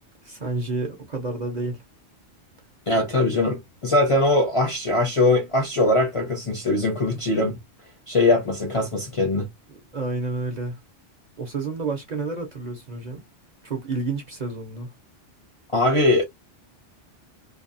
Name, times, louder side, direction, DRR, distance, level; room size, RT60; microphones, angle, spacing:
voice 1, 0.2-1.8 7.1-7.2 9.7-10.8 11.4-13.2 13.6-14.9, right 3 dB, 45° right, 0.7 m, -30 dB
voice 2, 2.9-7.6 8.1-9.5 15.7-16.2, left 2 dB, 35° left, 0.6 m, -21 dB
2.7 x 2.3 x 2.6 m
omnidirectional pair, 1.3 m